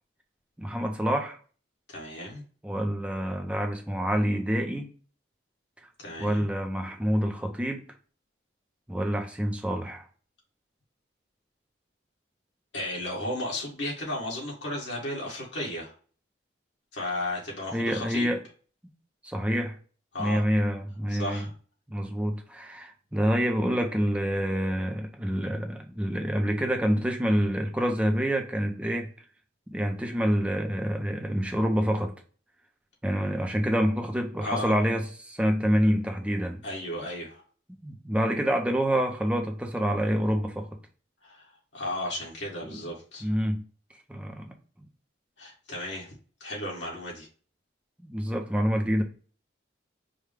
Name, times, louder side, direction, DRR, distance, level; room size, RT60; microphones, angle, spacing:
voice 1, 0.6-1.4 2.6-4.9 6.2-7.8 8.9-10.1 17.7-18.4 19.2-19.7 20.2-21.4 21.9-29.1 29.7-32.1 33.0-36.6 37.8-40.7 43.2-43.6 44.1-44.5 48.0-49.0, equal, 5° right, 0.5 m, -27 dB
voice 2, 1.9-2.4 6.0-6.4 12.7-15.9 16.9-18.3 20.1-20.4 21.1-21.5 34.4-34.8 36.6-37.4 41.2-43.3 45.4-46.1 46.4-47.3, left 1 dB, 70° left, 1.8 m, -34 dB
4.9 x 2.2 x 3.3 m
head